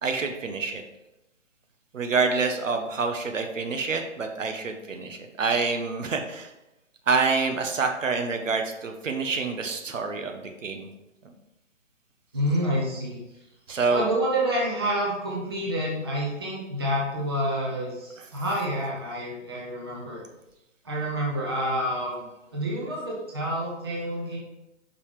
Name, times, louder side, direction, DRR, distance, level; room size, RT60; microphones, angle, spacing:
voice 1, 0.0-0.8 1.9-6.5 7.1-10.9 13.7-14.1 18.2-18.3, right 4 dB, 85° right, 4 dB, 1.3 m, -27 dB
voice 2, 12.3-13.2 13.9-20.2 20.8-24.4, equal, 20° right, -4 dB, 0.9 m, -28 dB
5.5 x 5.3 x 5.0 m, 0.95 s
hypercardioid pair, 180°, 37 cm